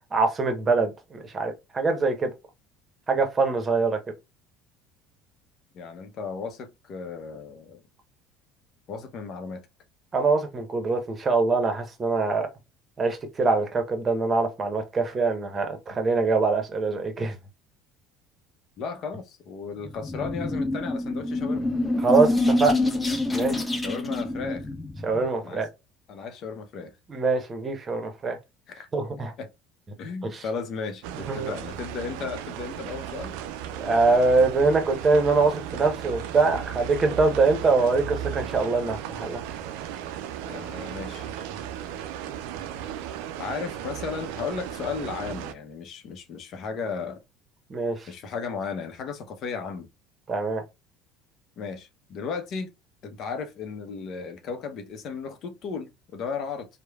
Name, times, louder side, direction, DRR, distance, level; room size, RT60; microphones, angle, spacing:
voice 1, 0.1-2.3 3.1-4.0 10.1-12.5 13.0-17.3 22.0-22.7 23.3-23.6 25.0-25.7 27.1-28.4 28.9-29.3 30.2-30.4 31.3-31.5 33.8-39.4 47.7-48.1 50.3-50.6, right 3 dB, 30° right, 0.9 m, -23 dB
voice 2, 5.7-7.8 8.9-9.6 18.8-21.7 23.8-24.7 25.4-25.6 26.1-26.9 28.7-28.9 29.4-29.5 30.0-33.4 40.4-41.3 43.4-47.2 48.1-49.9 51.6-52.7 53.0-56.7, left 5 dB, 55° left, 0.6 m, -35 dB
sound 1, 19.8-25.3, left 2 dB, 15° left, 0.7 m, -26 dB
sound 2, 31.0-45.5, right 10 dB, 75° right, 0.3 m, -36 dB
3.0 x 2.1 x 2.3 m
hypercardioid pair, 75°, 0 cm